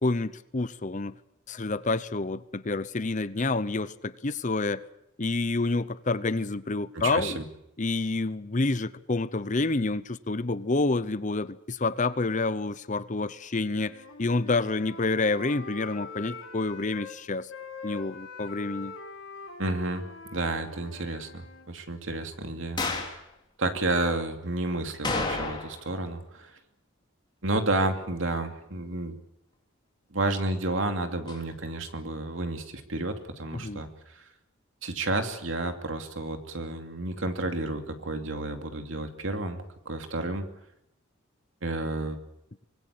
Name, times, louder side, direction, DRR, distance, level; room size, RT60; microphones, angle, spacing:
voice 1, 0.0-1.1 1.5-4.8 5.2-7.4 7.8-17.5 17.8-18.9 33.5-33.8, left 3 dB, 40° left, 0.8 m, -28 dB
voice 2, 6.9-7.4 19.6-20.0 20.3-23.2 23.6-26.5 27.4-29.2 30.1-33.9 34.2-34.3 34.8-40.5 41.6-42.2, right 2 dB, 70° right, 2.7 m, -31 dB
Wind instrument woodwind instrument, 13.7-17.2 17.5-21.7, left 4 dB, 80° left, 3.6 m, -43 dB
sound 1, 22.8-23.2 25.0-25.9 26.2-26.3 31.3-31.4, left 3 dB, 20° left, 3.8 m, -30 dB
24.5 x 20.5 x 8.5 m
head